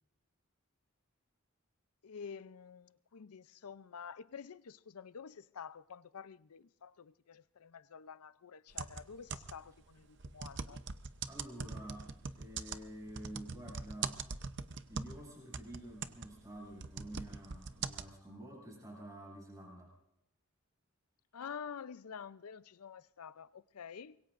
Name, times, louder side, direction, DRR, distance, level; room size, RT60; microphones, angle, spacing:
voice 1, 2.0-10.8 21.3-24.2, left 6 dB, 85° left, 0.6 m, -49 dB
sound 1, 8.7-9.7 10.2-15.2 15.5-18.1, right 5 dB, 50° right, 0.7 m, -42 dB
voice 2, 11.2-14.2 14.9-19.9, right 1 dB, 15° right, 6.6 m, -49 dB
25.5 x 22.0 x 2.6 m
head